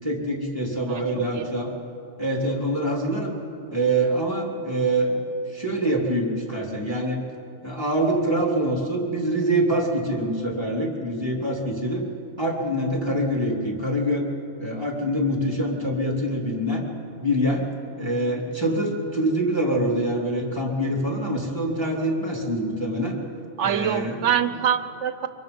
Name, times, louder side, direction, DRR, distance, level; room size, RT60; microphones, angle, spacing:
voice 1, 0.0-1.7 2.2-3.3 3.7-5.2 5.5-7.2 7.6-12.0 12.4-14.3 14.6-16.8 17.2-17.7 18.0-23.2 23.6-24.2, right 1 dB, 20° right, -1 dB, 3.1 m, -25 dB
voice 2, 0.9-1.5 23.6-25.3, right 8 dB, 70° right, 11 dB, 1.2 m, -25 dB
24.5 x 23.0 x 5.4 m, 2.7 s
omnidirectional pair, 1.3 m